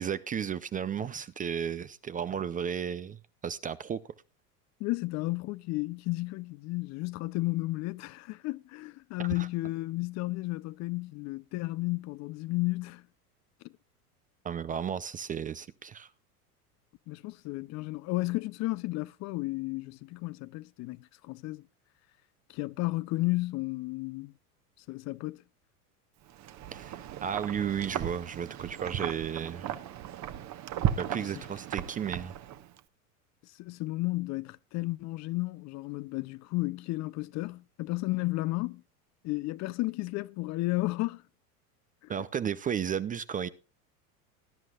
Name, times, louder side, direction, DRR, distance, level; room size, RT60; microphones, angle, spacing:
voice 1, 0.0-4.0 9.2-9.5 14.4-16.1 26.7-29.8 31.0-32.3 42.1-43.5, right 8 dB, 20° right, 0.5 m, -34 dB
voice 2, 4.8-13.0 17.1-21.7 22.5-24.3 24.9-25.4 31.1-31.3 33.4-38.8 39.2-41.2 42.0-42.1, left 21 dB, 35° left, 0.5 m, -33 dB
Wind, 26.3-32.8, right 11 dB, 35° right, 1.2 m, -36 dB
20.0 x 10.5 x 2.4 m
hypercardioid pair, 95°, 47 cm